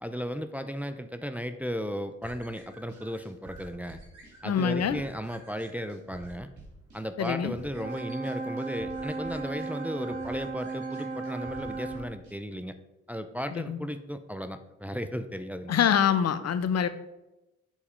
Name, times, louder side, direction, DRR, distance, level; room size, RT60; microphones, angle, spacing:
voice 1, 0.0-4.0 4.4-6.5 6.9-12.8 13.1-15.8, equal, 5° right, 9 dB, 0.6 m, -35 dB
sound 1, 2.2-12.4, right 1 dB, 70° right, 2.8 m, -50 dB
voice 2, 4.4-5.0 7.2-7.6 13.5-13.8 15.7-16.9, left 8 dB, 55° left, 13 dB, 0.6 m, -25 dB
Brass instrument, 7.7-12.1, right 3 dB, 25° right, 1.5 m, -36 dB
7.3 x 4.1 x 5.1 m, 0.97 s
supercardioid pair, 50°, 30 cm